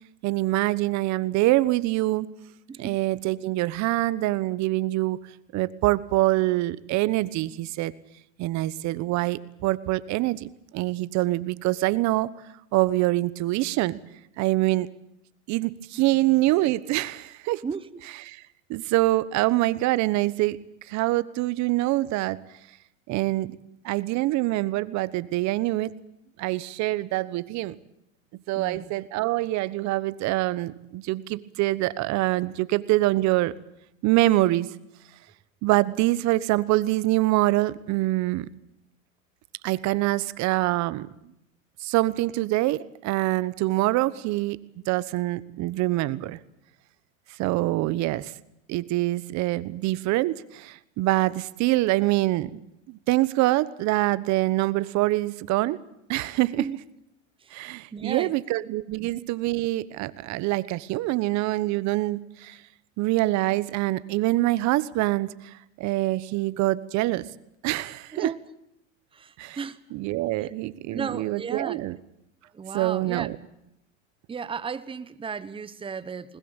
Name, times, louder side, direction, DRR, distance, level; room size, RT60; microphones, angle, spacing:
voice 1, 0.2-2.3 2.8-5.2 5.5-7.9 8.4-12.3 12.7-14.0 14.4-14.9 15.5-17.6 18.3-18.4 18.7-20.6 20.8-22.4 23.1-23.6 23.8-25.9 26.4-27.8 28.5-33.5 34.0-34.8 35.6-38.5 39.6-41.1 41.8-44.6 44.9-46.4 47.4-48.3 48.7-55.8 56.1-56.6 57.5-62.6 63.0-67.3 67.6-68.3 69.4-69.6 69.9-72.0 72.7-73.4, right 18 dB, 45° right, 18 dB, 1.2 m, -25 dB
voice 2, 17.6-18.0 28.6-28.9 56.6-56.8 57.4-57.5 57.9-58.3 59.0-59.1 68.1-68.4 69.1-69.8 70.4-70.5 70.9-71.8 72.5-73.3 74.3-76.4, right 6 dB, 15° right, 14 dB, 1.1 m, -34 dB
20.5 x 20.5 x 9.0 m, 0.80 s
hypercardioid pair, 115°, 39 cm